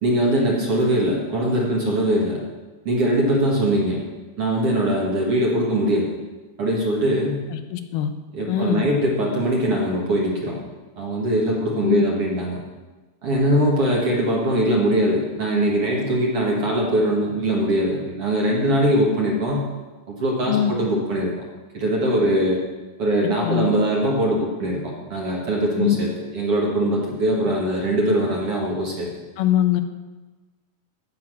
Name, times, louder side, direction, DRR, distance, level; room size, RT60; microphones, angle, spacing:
voice 1, 0.0-2.4 2.9-4.0 4.4-6.1 6.6-7.4 8.3-10.6 11.0-12.6 13.2-19.7 20.1-21.4 21.7-22.6 23.0-29.1, right 1 dB, 50° right, -2 dB, 2.0 m, -21 dB
voice 2, 7.5-8.1 8.5-8.8 11.8-12.0 20.5-20.7 23.4-23.7 25.8-26.0 29.4-29.8, left 12 dB, 85° left, 8 dB, 2.7 m, -22 dB
15.5 x 6.1 x 6.2 m, 1.2 s
omnidirectional pair, 4.3 m